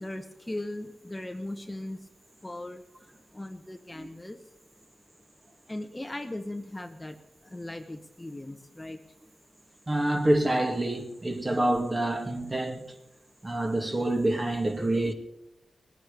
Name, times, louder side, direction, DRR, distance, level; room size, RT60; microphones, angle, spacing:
voice 1, 0.0-2.0 2.4-2.8 3.3-4.4 5.7-7.2 7.5-9.0, left 1 dB, 15° left, 1.1 m, -38 dB
voice 2, 9.9-12.9 13.4-15.1, right 1 dB, 30° right, 2.1 m, -27 dB
19.0 x 9.1 x 6.8 m
cardioid pair, 60°, 0 cm